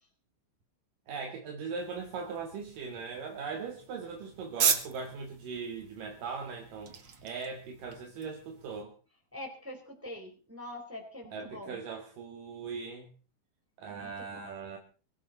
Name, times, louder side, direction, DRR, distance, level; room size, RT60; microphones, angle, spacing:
voice 1, 1.1-8.9 11.3-13.1 13.8-14.8, right 5 dB, 70° right, 3 dB, 3.6 m, -40 dB
sound 1, 1.8-8.8, right 7 dB, 45° right, 2.1 m, -37 dB
voice 2, 9.3-11.8 13.9-14.5, left 1 dB, 5° right, 2 dB, 3.9 m, -44 dB
23.0 x 13.5 x 4.2 m, 0.37 s
omnidirectional pair, 4.1 m